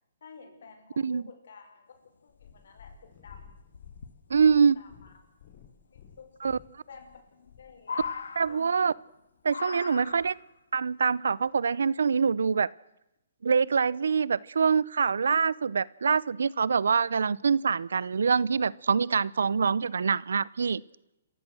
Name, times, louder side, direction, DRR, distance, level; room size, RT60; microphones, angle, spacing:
voice 1, 0.2-1.9 2.2-3.5 4.5-5.1 5.9-6.5 6.9-7.2 7.6-8.0 8.5-8.7 9.9-10.3, left 5 dB, 70° left, 5 dB, 5.6 m, -51 dB
Purr, 2.3-8.6 9.4-9.5, left 8 dB, 50° left, 5.2 m, -53 dB
sound 1, 2.5-2.6 2.8-2.9 3.6-4.1 5.7-5.8 7.0-7.5 7.8-9.0 9.5-10.5 11.5-11.6, left 5 dB, 90° left, 1.8 m, -39 dB
voice 2, 4.3-4.8 6.4-6.6 8.4-8.9 9.4-10.3 10.7-12.7 13.4-20.8, right 5 dB, 85° right, 23 dB, 0.7 m, -25 dB
28.0 x 15.5 x 6.3 m, 0.86 s
hypercardioid pair, 155°, 0 cm